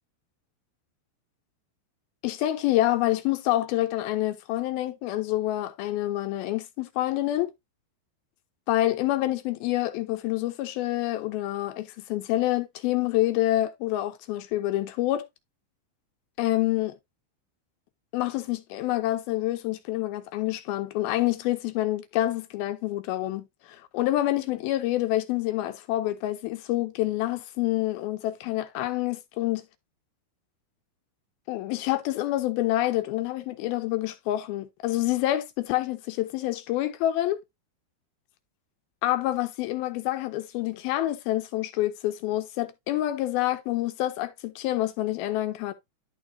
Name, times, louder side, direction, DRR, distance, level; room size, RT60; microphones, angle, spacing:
voice 1, 2.2-7.5 8.7-15.2 16.4-17.0 18.1-29.6 31.5-37.4 39.0-45.7, left 15 dB, 80° left, 2.2 m, -27 dB
11.5 x 4.7 x 2.6 m
omnidirectional pair, 4.8 m